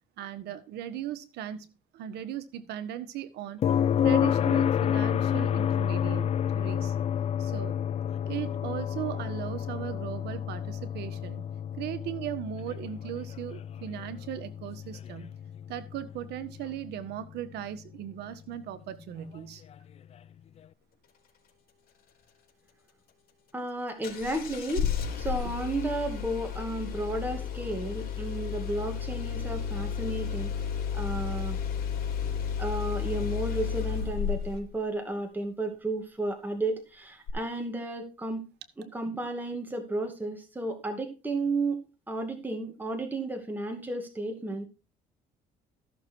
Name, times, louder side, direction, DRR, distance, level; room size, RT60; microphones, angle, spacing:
voice 1, 0.2-1.7 1.9-3.6 4.0-7.0 7.4-7.8 8.3-15.3 15.7-19.6, right 11 dB, 80° right, 1.5 m, -38 dB
sound 1, 3.6-17.5 19.7-19.8, left 9 dB, 40° left, 0.4 m, -29 dB
voice 2, 23.5-24.9 25.2-30.5 30.9-31.6 32.6-38.4 38.8-41.8 42.1-44.7, right 2 dB, 10° right, 2.3 m, -33 dB
Engine starting, 24.0-34.6 37.3-37.4, left 8 dB, 60° left, 3.8 m, -32 dB
14.0 x 6.6 x 4.6 m
cardioid pair, 110°, 17 cm